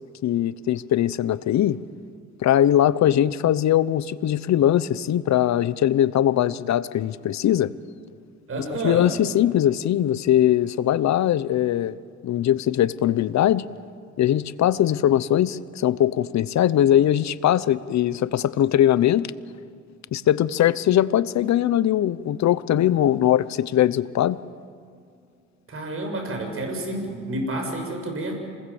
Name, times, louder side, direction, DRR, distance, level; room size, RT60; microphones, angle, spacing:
voice 1, 0.2-1.8 2.4-7.7 8.8-12.0 12.2-13.6 14.2-19.3 20.1-24.4, left 11 dB, 65° left, 17 dB, 0.8 m, -21 dB
voice 2, 8.5-9.2 25.7-28.3, right 1 dB, 45° right, 3 dB, 7.0 m, -29 dB
27.0 x 21.0 x 7.1 m, 2.3 s
cardioid pair, 90°, 30 cm